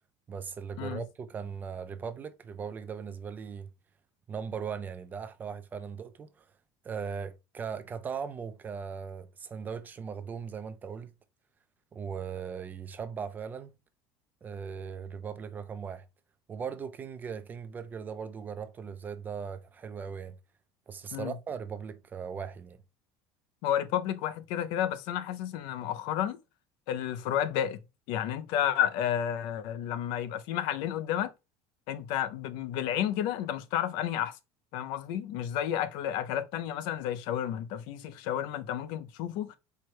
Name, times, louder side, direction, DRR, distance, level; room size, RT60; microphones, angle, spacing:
voice 1, 0.3-3.7 4.3-6.5 6.8-11.1 11.9-13.8 14.4-16.1 16.5-20.3 20.9-22.8, right 6 dB, 20° right, 0.4 m, -38 dB
voice 2, 23.6-26.4 26.9-27.8 28.1-31.3 31.9-34.4 34.7-39.6, left 10 dB, 65° left, 0.6 m, -31 dB
4.6 x 2.2 x 4.5 m
cardioid pair, 155°, 8 cm